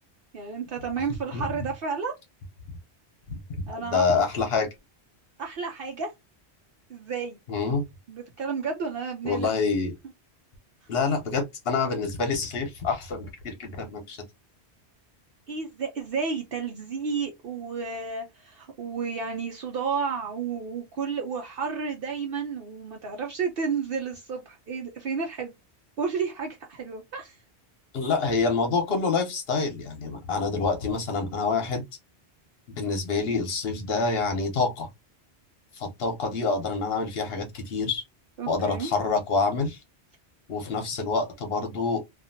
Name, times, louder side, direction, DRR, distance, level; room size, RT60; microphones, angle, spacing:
voice 1, 0.3-2.1 3.7-4.3 5.4-6.1 6.9-7.4 8.1-9.5 15.5-25.5 26.0-27.4 38.4-38.9 40.7-40.8, right 5 dB, 60° right, 0.8 m, -31 dB
voice 2, 3.8-4.7 7.5-7.8 9.2-9.9 10.9-14.2 27.9-31.8 32.7-34.9 35.8-38.0 38.5-39.8 40.5-42.1, left 4 dB, 65° left, 1.1 m, -27 dB
2.8 x 2.5 x 2.6 m
omnidirectional pair, 1.1 m